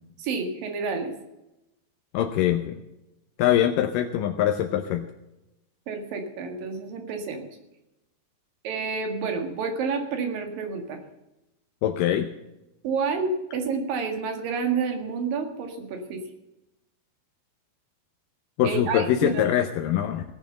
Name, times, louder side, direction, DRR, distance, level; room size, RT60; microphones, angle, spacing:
voice 1, 0.2-1.1 5.9-7.5 8.6-11.0 12.8-16.2 18.6-19.4, right 5 dB, 65° right, 5 dB, 3.5 m, -29 dB
voice 2, 2.1-2.8 3.4-5.1 11.8-12.3 18.6-20.2, left 11 dB, 75° left, 6 dB, 2.1 m, -23 dB
18.0 x 7.4 x 6.8 m, 0.95 s
omnidirectional pair, 4.6 m